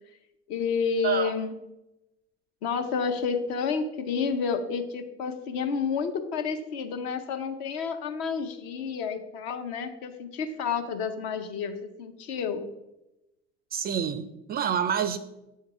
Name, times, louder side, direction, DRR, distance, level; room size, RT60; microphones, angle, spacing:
voice 1, 0.5-1.5 2.6-12.6, left 6 dB, 60° left, 7 dB, 0.8 m, -30 dB
voice 2, 1.0-1.3 13.7-15.2, right 8 dB, 30° right, 13 dB, 0.4 m, -27 dB
8.0 x 3.7 x 4.7 m, 0.95 s
figure-of-eight pair, 65°, 34 cm